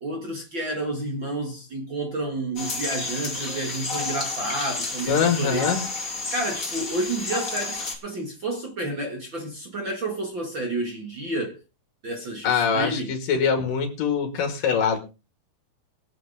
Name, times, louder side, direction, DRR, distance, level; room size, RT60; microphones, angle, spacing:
voice 1, 0.0-5.7 6.0-11.6 12.0-13.1, right 2 dB, 40° right, 2.1 m, -30 dB
sound 1, 2.6-8.0, left 3 dB, 25° left, 2.7 m, -31 dB
voice 2, 5.1-5.8 12.4-15.0, left 6 dB, 65° left, 3.7 m, -23 dB
21.5 x 7.8 x 3.6 m
omnidirectional pair, 4.2 m